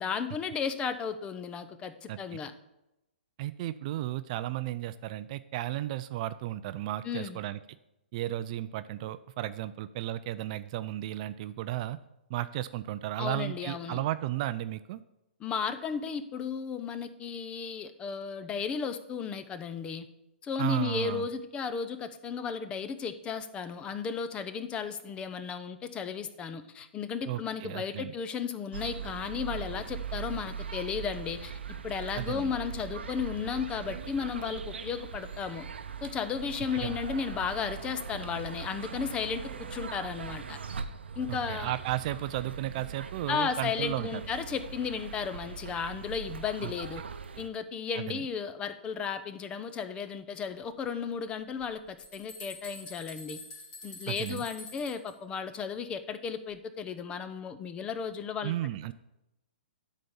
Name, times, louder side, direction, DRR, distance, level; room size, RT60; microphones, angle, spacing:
voice 1, 0.0-2.5 7.0-7.4 13.2-14.0 15.4-20.1 20.4-31.5 31.8-35.6 36.0-39.4 39.7-40.6 41.2-41.7 43.3-47.0 47.4-53.4 53.8-58.5, left 6 dB, 15° left, 11 dB, 0.5 m, -34 dB
voice 2, 2.1-2.4 3.4-7.6 8.1-12.0 12.3-15.0 20.6-21.3 27.3-28.1 32.1-32.5 36.8-37.0 41.3-44.2 46.6-46.7 47.9-48.2 54.1-54.4 58.4-58.9, right 14 dB, 40° right, 14 dB, 0.3 m, -34 dB
sound 1, 28.7-47.5, right 6 dB, 85° right, 0.7 m, -40 dB
sound 2, 51.6-55.1, left 2 dB, 35° left, 2.8 m, -46 dB
9.2 x 4.1 x 7.0 m, 0.90 s
hypercardioid pair, 145°, 6 cm